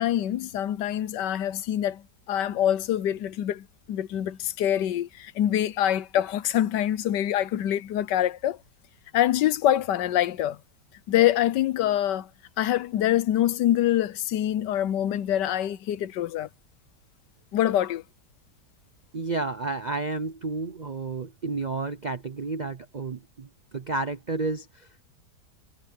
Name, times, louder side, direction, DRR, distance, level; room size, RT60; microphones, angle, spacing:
voice 1, 0.0-8.6 9.1-10.6 11.1-12.3 12.6-16.5 17.5-18.0, left 12 dB, 85° left, 1.4 m, -25 dB
voice 2, 19.1-25.0, right 3 dB, 60° right, 0.4 m, -31 dB
omnidirectional pair, 1.8 m